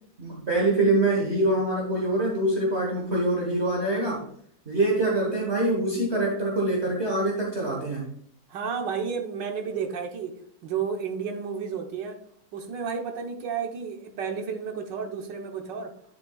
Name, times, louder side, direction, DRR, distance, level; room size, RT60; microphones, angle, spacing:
voice 1, 0.2-4.3 4.6-8.1, right 2 dB, 40° right, -2 dB, 1.6 m, -25 dB
voice 2, 8.5-10.3 10.6-12.2 12.5-15.9, right 6 dB, 90° right, 4 dB, 1.7 m, -32 dB
10.5 x 6.7 x 2.3 m, 0.62 s
omnidirectional pair, 1.9 m